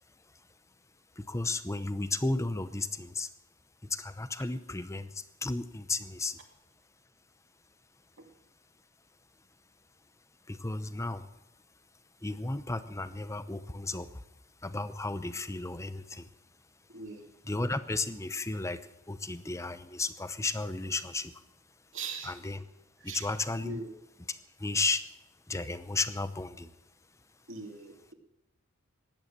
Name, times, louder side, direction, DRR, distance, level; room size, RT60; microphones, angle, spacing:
voice 1, 1.2-3.3 3.8-6.4 10.5-11.3 12.2-14.2 14.6-16.3 17.5-18.8 19.1-21.3 22.2-22.6 23.0-23.8 24.3-25.0 25.5-26.7, left 3 dB, 15° left, 12 dB, 0.7 m, -34 dB
voice 2, 16.9-17.3 21.9-22.3 23.0-23.3 23.6-23.9 27.5-28.1, right 4 dB, 60° right, 2 dB, 2.7 m, -41 dB
16.0 x 11.0 x 7.4 m, 0.91 s
head